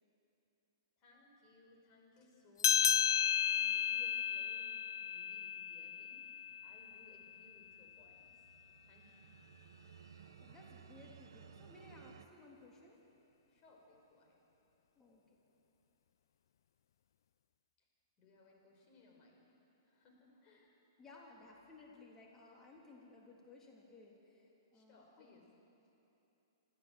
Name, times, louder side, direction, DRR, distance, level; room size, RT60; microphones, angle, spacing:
voice 1, 1.0-8.5 8.8-9.3 13.5-14.4 17.8-17.9 18.2-19.6 19.8-20.8 24.7-25.4, left 2 dB, 35° left, 0 dB, 5.6 m, -64 dB
sound 1, 2.6-7.5, left 9 dB, 70° left, 0.4 m, -34 dB
sound 2, 7.7-12.3, right 7 dB, 75° right, 1.1 m, -58 dB
voice 2, 10.4-13.0 15.0-15.2 21.0-25.3, left 3 dB, 15° left, -2 dB, 3.4 m, -59 dB
27.5 x 14.0 x 7.9 m, 3.0 s
hypercardioid pair, 130°, 2 cm